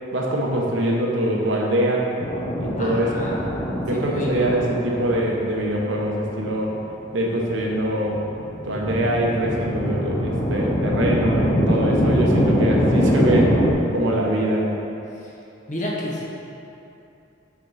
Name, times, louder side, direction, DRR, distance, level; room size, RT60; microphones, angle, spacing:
voice 1, 0.1-2.1 2.6-3.3 3.9-6.8 7.1-8.2 8.6-13.7 13.9-14.7, right 1 dB, 80° right, -2 dB, 0.9 m, -23 dB
sound 1, 2.2-13.7, equal, 20° left, 0.6 m, -23 dB
voice 2, 2.8-3.4 3.9-4.5 15.2-15.3 15.7-16.2, left 1 dB, 40° left, -4 dB, 0.9 m, -30 dB
5.9 x 4.3 x 4.0 m, 2.8 s
head